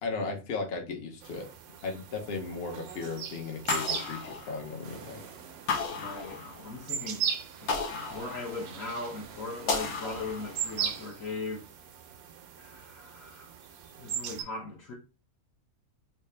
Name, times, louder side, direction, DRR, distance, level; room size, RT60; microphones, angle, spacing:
voice 1, 0.0-1.5 1.8-5.2, left 4 dB, 50° left, 1.0 m, -36 dB
sound 1, 1.2-14.4, right 8 dB, 80° right, 1.0 m, -39 dB
sound 2, 3.7-5.0 5.7-6.9 7.7-8.9 9.7-10.9, left 4 dB, 85° left, 1.3 m, -34 dB
sound 3, 4.8-11.1, right 5 dB, 60° right, 0.7 m, -50 dB
voice 2, 5.9-7.2 7.6-7.7 8.1-11.7 12.6-13.5 14.0-14.9, left 3 dB, 65° left, 1.3 m, -39 dB
3.4 x 2.8 x 3.2 m
omnidirectional pair, 1.5 m